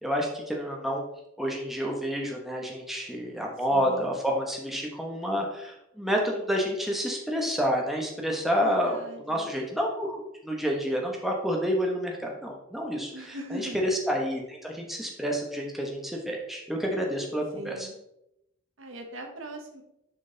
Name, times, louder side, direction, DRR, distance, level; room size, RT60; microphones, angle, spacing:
voice 1, 0.0-1.0 1.4-17.9, equal, ahead, 0 dB, 1.1 m, -29 dB
voice 2, 3.7-4.1 8.5-9.5 13.1-13.8 17.5-17.9 18.8-19.8, right 1 dB, 65° right, 3 dB, 1.3 m, -40 dB
6.7 x 5.1 x 3.9 m, 0.84 s
head